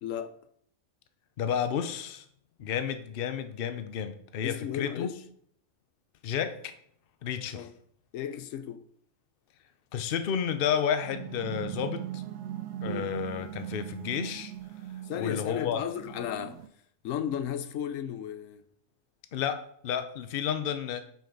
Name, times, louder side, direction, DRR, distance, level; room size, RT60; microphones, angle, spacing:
voice 1, 0.0-0.4 4.4-5.3 7.5-7.7 8.1-8.9 12.8-13.1 15.0-16.6 17.0-18.6, left 9 dB, 85° left, 1.0 m, -34 dB
voice 2, 1.4-2.2 2.6-5.1 6.2-6.7 7.2-7.7 9.9-12.2 12.8-14.5 15.2-15.8 19.3-21.0, left 8 dB, 55° left, 0.8 m, -31 dB
sound 1, 11.0-16.7, right 12 dB, 70° right, 0.9 m, -39 dB
10.0 x 5.1 x 3.8 m
omnidirectional pair, 1.3 m